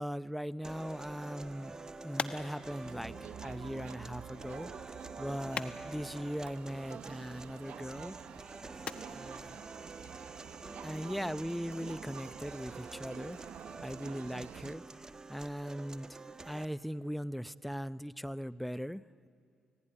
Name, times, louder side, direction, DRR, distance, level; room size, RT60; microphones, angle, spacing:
voice 1, 0.0-1.7 2.0-4.7 5.2-8.2 9.1-9.6 10.8-16.2 16.5-19.0, equal, ahead, 15 dB, 0.6 m, -39 dB
sound 1, 0.6-16.6, right 3 dB, 25° right, 1.3 m, -48 dB
sound 2, 1.3-11.0, left 5 dB, 50° left, 1.3 m, -47 dB
Crowd, 2.8-14.7, right 8 dB, 70° right, 0.8 m, -49 dB
29.0 x 18.0 x 9.9 m, 2.5 s
supercardioid pair, 65°, 2 cm